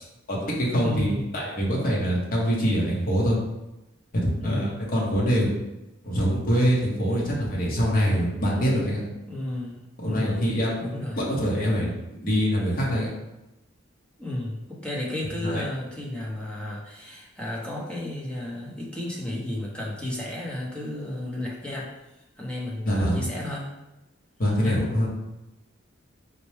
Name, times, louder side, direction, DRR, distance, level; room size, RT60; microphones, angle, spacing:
voice 1, 0.3-3.4 4.1-5.5 6.0-9.0 10.0-11.9 12.2-13.1 15.4-15.6 22.9-23.2 24.4-25.1, equal, 45° left, -4 dB, 1.0 m, -24 dB
voice 2, 0.8-1.3 4.4-4.8 9.3-9.8 10.1-10.5 10.8-11.2 14.2-21.9 22.4-23.7 24.6-24.8, left 1 dB, 5° left, -4 dB, 0.7 m, -33 dB
4.3 x 2.1 x 3.2 m, 0.95 s
head